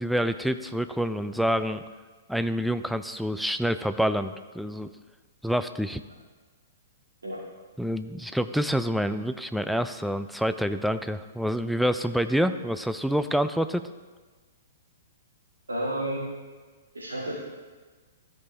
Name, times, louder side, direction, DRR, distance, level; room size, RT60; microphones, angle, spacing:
voice 1, 0.0-1.8 2.3-4.9 5.4-6.0 7.8-13.8, equal, ahead, 10 dB, 0.3 m, -27 dB
voice 2, 15.7-16.2 16.9-17.4, right 1 dB, 75° right, -9 dB, 2.0 m, -31 dB
14.5 x 5.2 x 2.8 m, 1.4 s
figure-of-eight pair, 110°, 0 cm